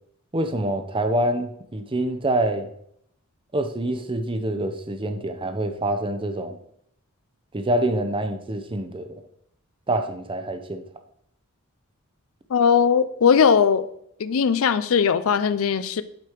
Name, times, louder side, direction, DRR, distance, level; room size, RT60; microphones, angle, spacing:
voice 1, 0.3-2.7 3.5-6.6 7.5-9.1 9.9-10.9, right 1 dB, 25° right, 0.7 m, -26 dB
voice 2, 12.5-13.9 14.2-16.0, left 6 dB, 65° left, 0.5 m, -19 dB
8.2 x 5.1 x 4.5 m
head